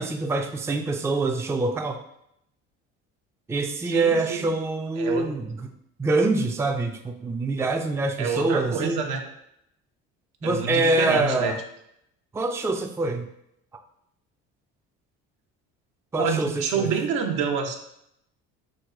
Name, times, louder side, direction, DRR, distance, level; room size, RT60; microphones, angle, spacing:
voice 1, 0.0-2.0 3.5-5.6 6.0-9.0 10.4-11.6 12.3-13.3 16.1-16.9, right 2 dB, 10° right, 4 dB, 0.4 m, -25 dB
voice 2, 3.8-4.4 5.0-5.3 8.2-9.2 10.4-11.5 16.2-17.7, right 5 dB, 75° right, 3 dB, 0.9 m, -27 dB
6.3 x 2.2 x 3.6 m, 0.76 s
hypercardioid pair, 70°, 32 cm